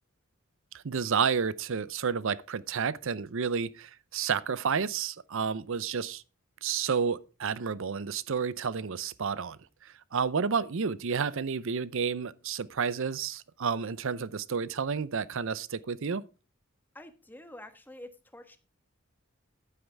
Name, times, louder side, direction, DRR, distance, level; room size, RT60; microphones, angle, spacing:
voice 1, 0.7-6.2 6.6-16.2, right 6 dB, 65° right, 0.6 m, -31 dB
voice 2, 16.9-18.6, left 1 dB, 10° left, 1.3 m, -47 dB
11.5 x 9.4 x 3.4 m
head